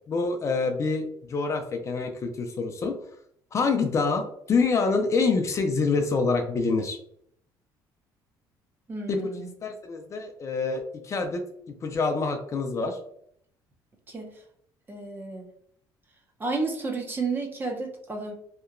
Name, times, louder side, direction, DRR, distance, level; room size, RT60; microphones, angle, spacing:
voice 1, 0.1-2.9 3.5-7.0 9.1-9.2 9.6-11.4 11.8-13.0, left 4 dB, 35° left, 5 dB, 0.4 m, -26 dB
voice 2, 8.9-9.5 14.1-14.4 14.9-15.5 16.4-18.3, right 3 dB, 25° right, 3 dB, 0.5 m, -32 dB
2.8 x 2.1 x 2.4 m, 0.67 s
cardioid pair, 110°, 8 cm